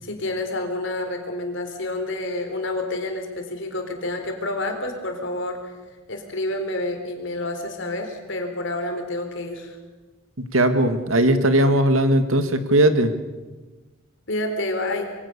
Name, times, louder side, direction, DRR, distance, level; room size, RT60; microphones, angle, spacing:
voice 1, 0.0-5.8 6.1-9.8 14.3-15.1, left 2 dB, 65° left, 5 dB, 4.2 m, -28 dB
voice 2, 10.5-13.1, right 1 dB, 85° right, 9 dB, 2.1 m, -18 dB
25.5 x 23.5 x 6.9 m, 1.2 s
head